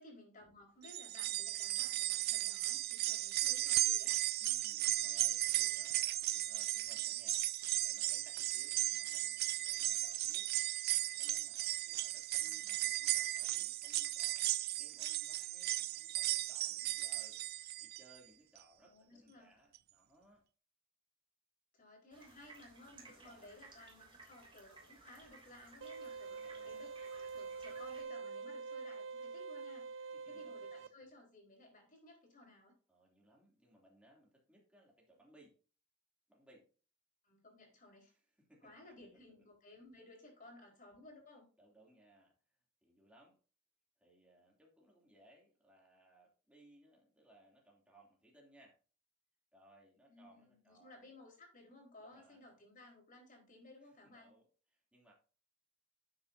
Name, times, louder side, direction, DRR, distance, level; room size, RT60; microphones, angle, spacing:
voice 1, 0.0-4.1 8.7-9.0 12.4-12.7 18.8-19.5 21.7-26.9 27.2-32.7 37.2-38.1 38.6-41.5 50.1-54.3, left 2 dB, 45° left, 0 dB, 4.7 m, -58 dB
sound 1, 0.8-18.2 18.6-18.7 19.8-19.9, right 16 dB, 50° right, 0.3 m, -36 dB
voice 2, 4.4-7.4 7.7-10.5 10.8-17.4 17.8-20.4 22.9-23.5 26.3-26.8 30.1-30.6 32.9-35.5 36.3-36.7 38.1-38.7 41.6-43.4 44.0-48.8 49.5-51.0 52.0-52.6 53.8-54.4 54.7-55.1, right 1 dB, 5° right, -2 dB, 2.9 m, -65 dB
sound 2, 22.1-28.0, right 3 dB, 25° right, 3.1 m, -59 dB
sound 3, 25.8-30.9, right 5 dB, 70° right, 0.7 m, -45 dB
12.0 x 7.9 x 2.8 m, 0.37 s
head